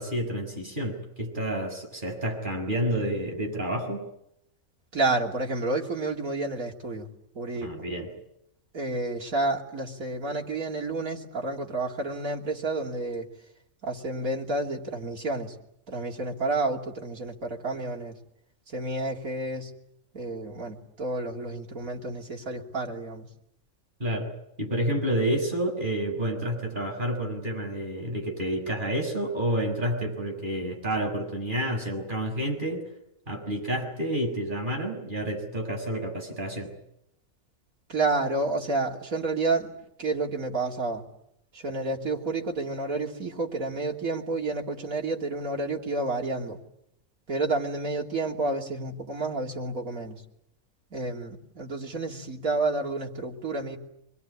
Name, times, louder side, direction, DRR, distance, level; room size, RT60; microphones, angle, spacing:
voice 1, 0.0-4.1 7.6-8.1 24.0-24.3 24.6-32.8 33.3-36.7, right 1 dB, 35° right, 2 dB, 6.6 m, -29 dB
voice 2, 4.9-7.1 7.3-7.7 8.7-13.3 13.8-15.5 15.9-18.2 18.7-19.7 20.1-23.3 37.9-39.7 40.0-41.0 41.5-46.6 47.3-50.2 50.9-53.8, right 2 dB, 85° right, 0 dB, 3.4 m, -30 dB
25.5 x 21.5 x 9.7 m, 0.80 s
omnidirectional pair, 1.4 m